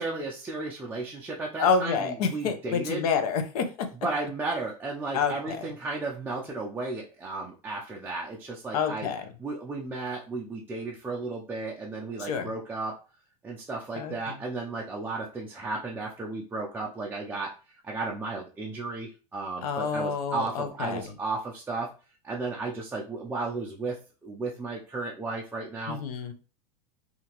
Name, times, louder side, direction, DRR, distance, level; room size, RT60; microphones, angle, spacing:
voice 1, 0.0-3.0 4.0-9.1 9.4-12.9 13.4-17.5 17.8-21.9 22.2-26.0, right 3 dB, 10° right, -3 dB, 0.3 m, -34 dB
voice 2, 1.6-3.7 5.1-5.7 8.7-9.3 12.2-12.5 13.9-14.4 19.6-21.0 25.9-26.3, left 6 dB, 75° left, 7 dB, 0.7 m, -28 dB
2.8 x 2.5 x 2.8 m, 0.35 s
supercardioid pair, 130°, 20 cm